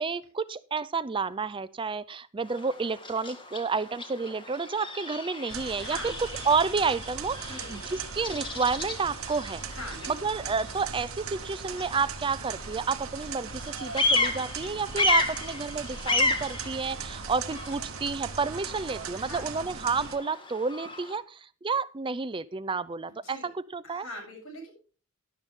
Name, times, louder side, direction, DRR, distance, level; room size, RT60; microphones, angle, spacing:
voice 1, 0.0-6.0 6.5-9.6 10.1-24.1, right 4 dB, 25° right, 16 dB, 0.4 m, -30 dB
Bird vocalization bird call bird song, 2.4-21.2, left 2 dB, 25° left, 1.8 m, -34 dB
sound 1, 5.5-20.2, right 6 dB, 85° right, 1.1 m, -39 dB
voice 2, 5.7-6.2 7.5-7.8 9.7-10.3 12.6-12.7 19.1-19.4 23.1-23.5 23.8-24.7, left 1 dB, 75° left, 1 dB, 7.9 m, -42 dB
12.5 x 11.5 x 3.7 m, 0.38 s
head